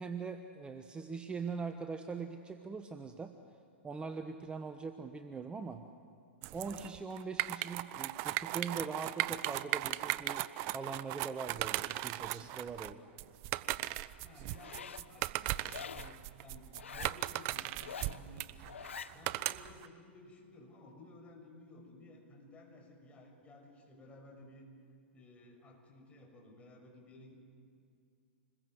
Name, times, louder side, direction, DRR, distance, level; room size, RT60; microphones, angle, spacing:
voice 1, 0.0-3.3 3.8-5.8 6.5-13.0, right 5 dB, 15° right, 7 dB, 1.2 m, -42 dB
sound 1, 6.4-19.9, right 17 dB, 40° right, 0.7 m, -37 dB
voice 2, 14.2-18.8 19.1-24.7 25.1-27.4, left 2 dB, 20° left, 1 dB, 6.5 m, -56 dB
Zipper (clothing), 14.5-15.1 15.7-16.2 16.7-17.2 17.7-18.2 18.7-19.1, left 7 dB, 85° left, 1.0 m, -45 dB
27.0 x 21.5 x 8.0 m, 2.3 s
hypercardioid pair, 115°, 7 cm